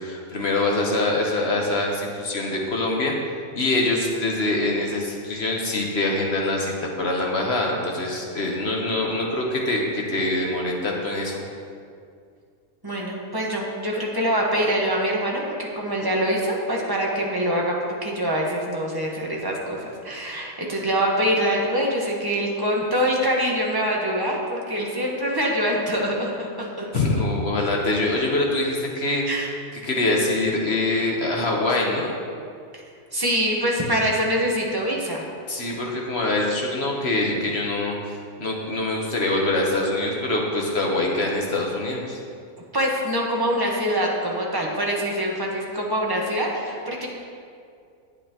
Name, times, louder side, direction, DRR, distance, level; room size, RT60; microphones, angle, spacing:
voice 1, 0.0-3.1 3.5-11.4 26.9-29.2 29.8-32.1 35.5-42.2, left 2 dB, 50° left, -1 dB, 1.2 m, -24 dB
voice 2, 12.8-19.8 20.0-26.9 29.3-29.5 32.7-32.8 33.1-35.2 42.7-47.1, equal, 15° right, -2 dB, 1.1 m, -24 dB
10.5 x 8.9 x 2.9 m, 2.3 s
omnidirectional pair, 1.5 m